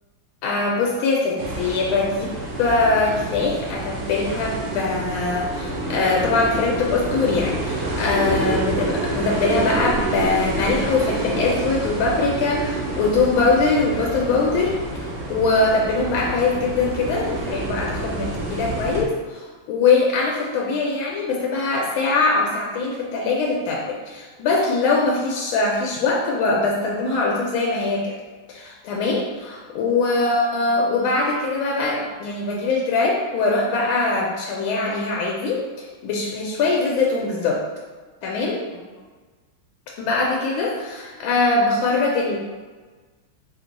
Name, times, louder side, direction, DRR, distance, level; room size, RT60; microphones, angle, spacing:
voice 1, 0.4-2.3 2.6-28.1 28.5-37.6 38.2-38.6 40.0-42.4, left 3 dB, 85° left, -2 dB, 1.4 m, -22 dB
sound 1, 1.4-19.0, right 2 dB, 60° right, 1.0 m, -28 dB
4.4 x 2.2 x 3.9 m, 1.4 s
omnidirectional pair, 2.2 m